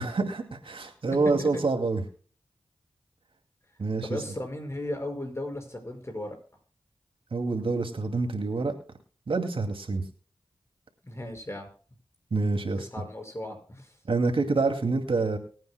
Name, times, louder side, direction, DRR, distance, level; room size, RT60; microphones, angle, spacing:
voice 1, 0.0-2.0 3.8-4.1 7.3-8.7 9.3-10.0 12.3-12.9 14.1-15.4, right 3 dB, 75° right, 5 dB, 2.3 m, -27 dB
voice 2, 4.0-6.4 11.0-11.7 12.8-14.0, left 1 dB, 30° left, 4 dB, 5.6 m, -36 dB
24.0 x 9.4 x 2.2 m, 0.41 s
cardioid pair, 40°, 9 cm